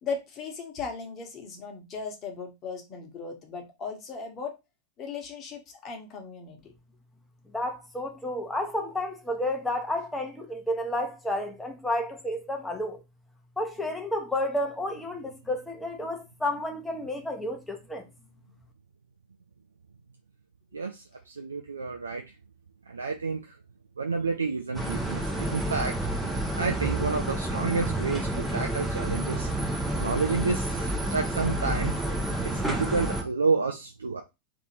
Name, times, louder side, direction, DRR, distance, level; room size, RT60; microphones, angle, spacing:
voice 1, 0.0-4.6 5.0-6.6, left 5 dB, 30° left, 1.4 m, -37 dB
voice 2, 7.5-13.0 13.6-18.0, left 1 dB, 5° left, 1.0 m, -31 dB
voice 3, 20.7-22.2 22.9-23.6 24.0-26.1 26.6-29.5 29.9-32.0 32.4-34.2, right 4 dB, 75° right, 0.5 m, -30 dB
sound 1, 24.7-33.2, right 1 dB, 10° right, 0.9 m, -29 dB
3.4 x 2.9 x 4.3 m
figure-of-eight pair, 90°, 0 cm